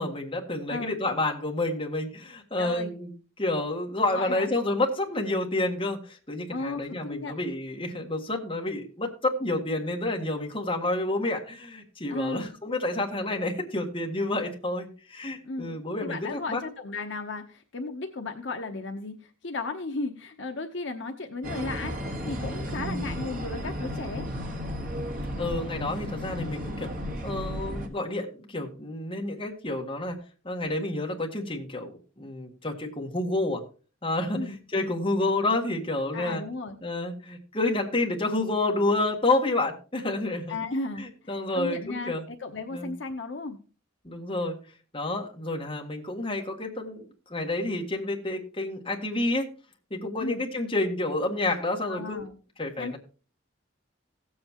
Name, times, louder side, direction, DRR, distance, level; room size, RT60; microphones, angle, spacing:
voice 1, 0.0-16.6 22.7-23.3 25.4-26.9 27.2-30.2 30.4-33.6 34.0-36.4 36.8-40.6 41.0-42.2 42.7-42.9 44.0-44.6 44.9-47.0 47.3-49.5 49.9-52.3 52.6-53.0, left 2 dB, 25° left, 1 dB, 1.6 m, -29 dB
voice 2, 2.6-2.9 4.0-4.5 6.5-7.4 12.1-12.5 15.4-15.7 16.0-22.0 22.3-24.2 34.3-34.6 36.1-36.8 40.5-43.6 50.2-50.4 51.8-52.3 52.8-53.0, left 3 dB, 60° left, 4 dB, 0.8 m, -35 dB
sound 1, 21.4-27.9, equal, 40° right, 1.3 m, -34 dB
16.5 x 7.8 x 2.9 m, 0.36 s
head